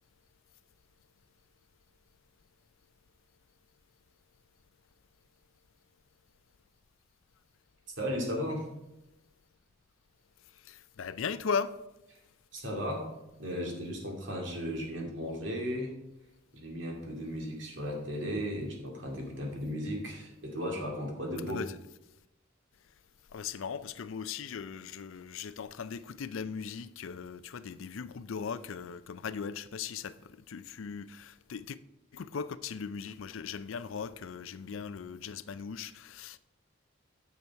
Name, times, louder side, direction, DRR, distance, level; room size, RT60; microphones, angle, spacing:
voice 1, 8.0-8.7 12.5-13.1 13.4-16.0 16.5-21.6, equal, 65° right, 2.3 m, -35 dB
voice 2, 10.6-11.7 21.5-21.8 23.3-31.8 32.1-36.4, left 6 dB, 80° left, 0.4 m, -38 dB
9.5 x 7.1 x 4.6 m
head